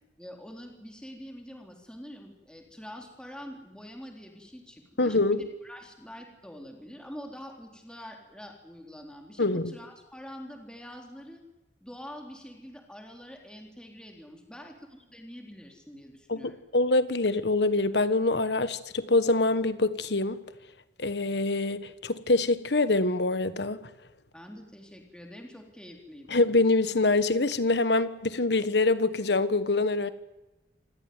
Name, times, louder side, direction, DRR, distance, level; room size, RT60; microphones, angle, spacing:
voice 1, 0.2-11.4 11.8-16.6 24.3-26.4, equal, 5° left, 3.8 m, -45 dB
voice 2, 5.0-5.4 9.4-9.7 16.3-20.4 21.0-23.8 26.3-30.1, left 2 dB, 65° left, 1.4 m, -25 dB
27.0 x 16.5 x 9.6 m
head